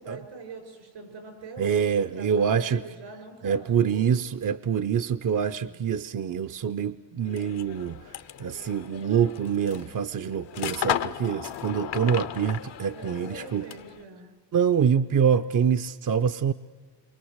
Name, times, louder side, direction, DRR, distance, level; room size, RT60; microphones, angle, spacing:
voice 1, 0.0-4.1 5.5-5.8 12.9-14.3, right 4 dB, 85° right, 6 dB, 6.3 m, -43 dB
voice 2, 1.6-2.8 3.4-8.0 8.4-13.7 14.5-16.5, right 7 dB, 45° right, 10 dB, 0.7 m, -25 dB
sound 1, 7.2-14.0, left 10 dB, 70° left, 1.0 m, -35 dB
28.0 x 24.0 x 8.1 m, 1.4 s
cardioid pair, 75°, 44 cm